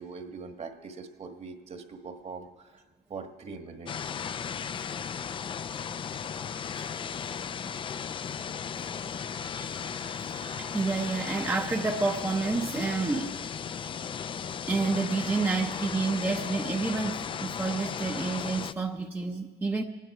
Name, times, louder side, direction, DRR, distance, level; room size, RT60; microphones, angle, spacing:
voice 1, 0.0-2.8 3.1-4.1, right 4 dB, 40° right, 7 dB, 1.4 m, -42 dB
sound 1, 3.9-18.7, left 7 dB, 30° left, 0.4 m, -36 dB
voice 2, 6.8-7.1 9.5-13.9 14.7-19.8, right 3 dB, 10° right, 2 dB, 0.7 m, -30 dB
24.5 x 10.0 x 4.8 m, 1.3 s
cardioid pair, 110°, 17 cm